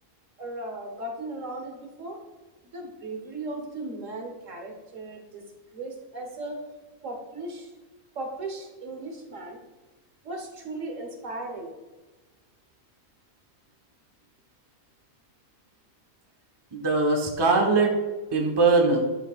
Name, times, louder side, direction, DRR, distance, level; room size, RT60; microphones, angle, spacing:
voice 1, 0.4-2.2 2.7-5.5 5.7-6.6 7.0-7.7 8.1-9.6 10.2-11.7, right 2 dB, 65° right, 3 dB, 1.5 m, -37 dB
voice 2, 16.7-17.9 18.3-19.0, right 3 dB, 20° right, 1 dB, 1.0 m, -21 dB
11.5 x 6.0 x 2.4 m, 1.2 s
omnidirectional pair, 1.4 m